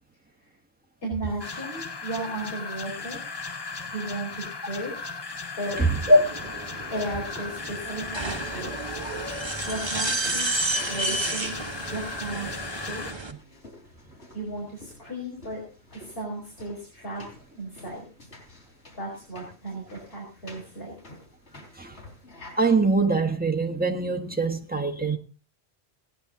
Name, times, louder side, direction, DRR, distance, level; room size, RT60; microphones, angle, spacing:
voice 1, 1.0-3.2 3.9-4.9 5.6-5.8 6.9-8.8 9.6-11.6 11.9-13.2 14.3-15.6 15.9-17.3 17.5-18.0 19.0-21.2, right 1 dB, 60° left, 4.8 m, -35 dB
sound 1, 1.4-13.1, left 4 dB, 30° left, 0.6 m, -37 dB
sound 2, 5.7-13.3, right 2 dB, 25° right, 1.4 m, -32 dB
voice 2, 5.8-6.2 21.8-21.9 22.6-25.2, right 2 dB, 10° right, 1.5 m, -22 dB
sound 3, 6.0-22.8, left 1 dB, 85° left, 4.3 m, -50 dB
17.0 x 10.5 x 4.0 m
omnidirectional pair, 1.1 m